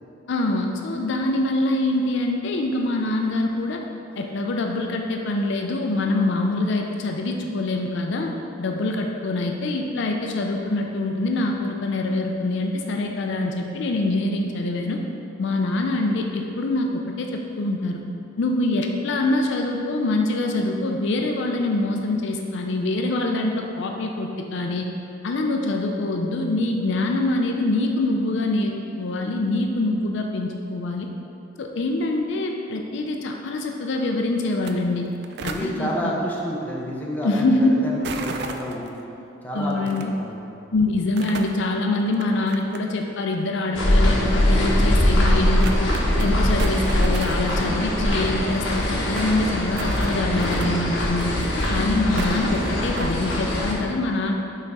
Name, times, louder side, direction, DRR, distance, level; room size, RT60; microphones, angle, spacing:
voice 1, 0.3-3.8 4.2-8.3 8.6-15.0 15.4-18.0 18.4-24.9 25.2-31.1 31.6-35.0 35.4-36.1 37.2-37.7 39.5-40.1 40.7-45.9 46.2-51.3 51.7-54.3, left 2 dB, 60° left, 2 dB, 0.4 m, -24 dB
sound 1, 34.5-34.7 35.0-35.7 38.0-38.9 39.9-40.0 41.0-41.6 42.1-43.0 43.3-43.4 44.3-44.4 44.8-44.9 45.2-45.3 45.6-46.3 46.6-47.6 47.8-47.9 48.1-48.2 48.4-49.3 49.8-50.7 51.2-51.8 52.2-53.2, right 4 dB, 55° right, 0.4 m, -35 dB
voice 2, 35.4-37.5 37.8-38.9 39.4-39.9 40.2-40.4, equal, 10° left, -4 dB, 0.7 m, -29 dB
sound 2, 43.7-53.7, left 1 dB, 80° left, 1.1 m, -22 dB
5.6 x 4.0 x 4.7 m, 2.7 s
head